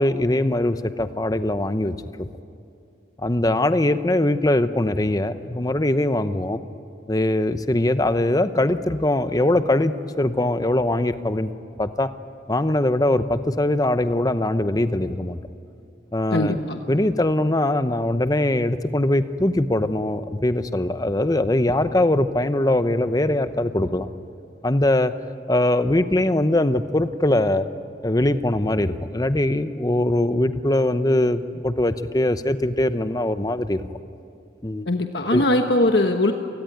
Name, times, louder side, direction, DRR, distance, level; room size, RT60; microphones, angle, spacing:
voice 1, 0.0-2.3 3.2-6.6 7.1-11.5 11.8-12.1 12.5-15.4 16.1-16.6 16.9-24.1 24.6-25.1 25.5-27.7 28.0-33.9 34.6-34.9 35.3-35.5, left 1 dB, 20° left, 11 dB, 0.8 m, -21 dB
voice 2, 16.3-16.8 34.9-36.3, left 1 dB, 70° left, 4 dB, 1.3 m, -20 dB
28.5 x 19.5 x 9.3 m, 2.6 s
head